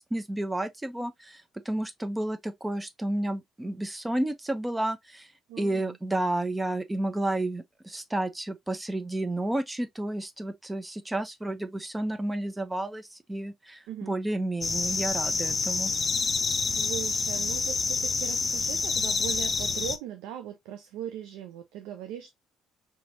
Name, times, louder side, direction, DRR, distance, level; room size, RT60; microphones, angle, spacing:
voice 1, 0.0-5.3 5.6-15.9, right 1 dB, 15° right, 0.7 m, -31 dB
voice 2, 5.5-6.0 13.9-14.1 16.5-22.3, right 10 dB, 70° right, 0.5 m, -39 dB
sound 1, 14.6-20.0, left 4 dB, 40° left, 0.6 m, -28 dB
4.2 x 2.9 x 2.6 m
hypercardioid pair, 50°, 0 cm